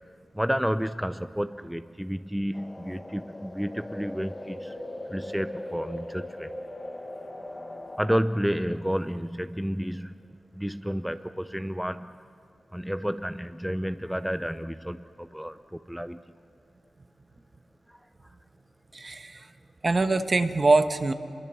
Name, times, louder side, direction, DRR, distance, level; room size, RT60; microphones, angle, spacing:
voice 1, 0.3-4.8 5.0-6.5 8.0-12.2 12.7-16.2 17.9-18.0, equal, 5° right, 10 dB, 0.6 m, -31 dB
sound 1, 2.5-8.2, left 1 dB, 25° left, 1.6 m, -39 dB
voice 2, 18.9-19.4 19.8-21.1, right 3 dB, 45° right, 9 dB, 1.2 m, -23 dB
24.5 x 22.5 x 7.1 m, 2.4 s
cardioid pair, 55°, 0 cm